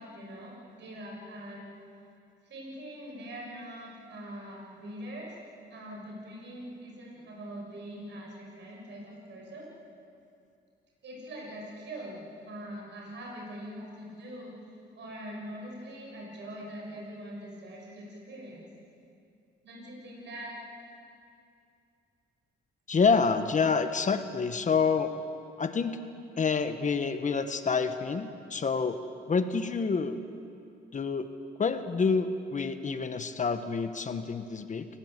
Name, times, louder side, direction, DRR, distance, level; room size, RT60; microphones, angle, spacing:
voice 1, 0.0-1.7 2.4-5.4 5.7-9.7 11.0-18.7 19.6-20.5, equal, 65° right, -2 dB, 7.4 m, -43 dB
voice 2, 22.9-25.1 25.6-26.0 26.4-29.0 29.3-30.2 30.9-31.3 31.6-34.9, left 5 dB, 40° left, 9 dB, 1.4 m, -27 dB
28.5 x 17.0 x 8.4 m, 2.5 s
cardioid pair, 90°, 20 cm